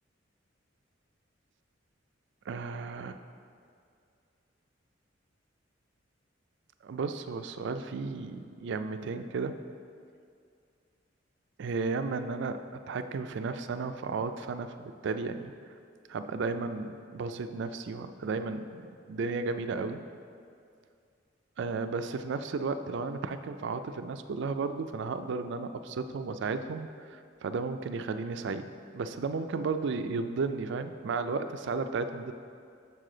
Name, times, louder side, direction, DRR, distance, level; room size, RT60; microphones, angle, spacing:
voice 1, 2.5-3.2 6.8-9.6 11.6-15.5 16.1-20.0 21.6-28.7 28.9-32.3, right 4 dB, 65° right, 9 dB, 0.4 m, -34 dB
6.8 x 6.6 x 3.8 m, 2.3 s
head